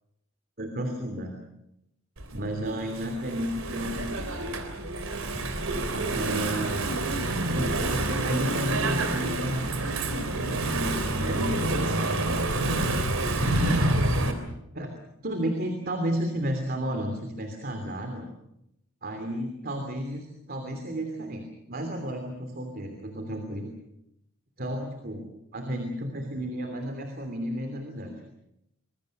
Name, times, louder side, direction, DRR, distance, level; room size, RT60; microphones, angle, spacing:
voice 1, 0.6-1.4 2.3-4.1 4.4-4.5 5.9-7.0 7.5-10.1 10.5-12.8 13.2-14.0 14.7-14.9 15.2-18.3 19.0-23.7 24.6-28.2, equal, 45° right, 5 dB, 3.1 m, -33 dB
Engine / Mechanisms, 2.2-14.3, right 2 dB, 90° right, 3.5 m, -28 dB
25.5 x 22.0 x 6.7 m, 0.81 s
head